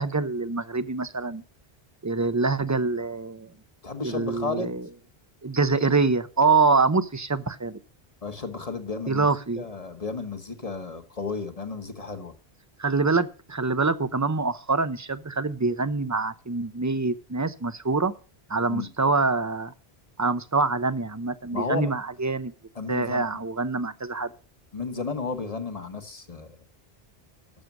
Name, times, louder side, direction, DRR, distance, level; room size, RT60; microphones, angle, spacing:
voice 1, 0.0-1.4 2.0-3.5 4.0-4.8 5.4-7.8 9.1-9.6 12.8-18.1 18.5-19.7 20.2-22.5 22.9-24.3, right 4 dB, 20° right, 0.6 m, -25 dB
voice 2, 3.8-4.8 8.2-9.3 9.6-12.3 18.7-18.9 21.5-22.0 22.7-23.4 24.7-26.6, left 4 dB, 35° left, 1.4 m, -33 dB
13.0 x 6.8 x 6.1 m
omnidirectional pair, 1.1 m